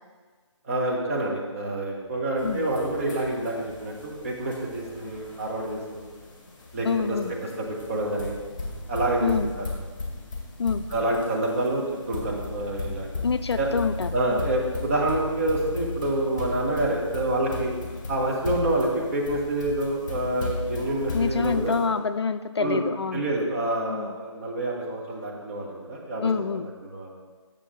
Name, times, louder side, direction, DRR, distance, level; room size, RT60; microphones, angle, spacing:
voice 1, 0.7-6.1 6.7-7.2 7.6-8.3 8.9-9.3 9.6-9.7 10.9-13.1 13.6-13.7 14.1-17.7 18.1-21.7 22.6-22.8 23.1-26.3 26.5-27.1, right 1 dB, 30° right, -2 dB, 1.3 m, -27 dB
sound 1, 2.4-21.9, left 3 dB, 40° left, 1.8 m, -36 dB
voice 2, 6.8-7.3 9.2-9.5 10.6-10.9 13.2-14.5 21.1-23.2 23.9-24.2 26.2-26.7, left 5 dB, 60° left, 11 dB, 0.4 m, -27 dB
8.5 x 6.9 x 3.8 m, 1.5 s
figure-of-eight pair, 160°, 16 cm